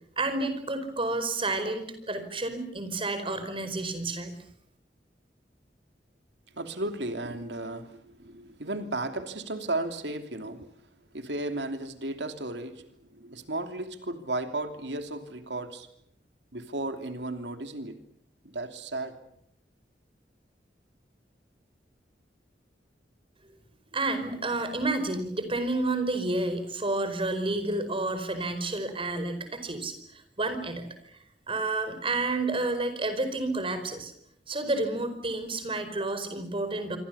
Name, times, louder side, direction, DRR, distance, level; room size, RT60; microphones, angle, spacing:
voice 1, 0.2-4.3 23.9-30.9 31.5-34.1 34.5-37.0, right 2 dB, 30° right, 10 dB, 4.8 m, -30 dB
voice 2, 6.5-10.7 11.1-15.9 16.5-18.0 18.4-19.2, right 2 dB, 80° right, 7 dB, 2.9 m, -34 dB
27.5 x 25.0 x 7.1 m, 0.71 s
head